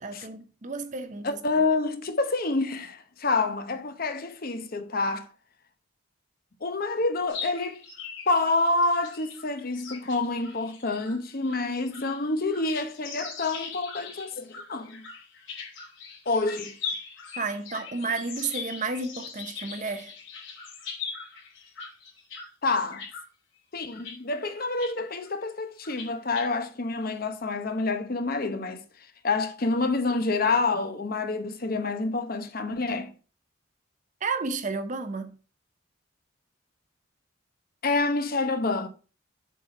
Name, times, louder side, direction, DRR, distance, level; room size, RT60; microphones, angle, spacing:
voice 1, 0.0-1.4 17.4-20.1 34.2-35.3, right 4 dB, 40° right, 0.7 m, -32 dB
voice 2, 1.2-5.3 6.6-7.8 8.3-15.0 16.3-16.8 22.6-23.0 23.7-28.8 29.2-33.1 37.8-38.9, left 3 dB, 45° left, 0.9 m, -27 dB
sound 1, 7.3-22.5 22.7-23.2 23.8-24.2 24.5-24.9 25.2-25.3 25.8-26.4, left 5 dB, 70° left, 2.9 m, -40 dB
7.4 x 4.2 x 5.8 m
head